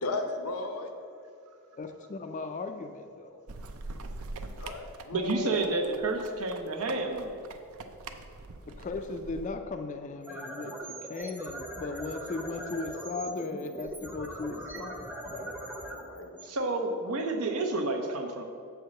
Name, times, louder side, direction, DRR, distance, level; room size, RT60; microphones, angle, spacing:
voice 1, 0.0-0.9 4.6-5.5 15.6-16.4, left 3 dB, 85° left, 5 dB, 0.8 m, -36 dB
voice 2, 1.8-3.4 8.7-15.6, left 3 dB, 35° left, 6 dB, 0.4 m, -37 dB
sound 1, 3.5-9.5, right 3 dB, 70° right, 0.5 m, -43 dB
voice 3, 5.1-7.4 16.4-18.4, right 2 dB, 85° right, 4 dB, 0.9 m, -30 dB
sound 2, 10.1-17.2, right 1 dB, 10° right, 0.6 m, -41 dB
7.4 x 4.6 x 6.4 m, 2.5 s
head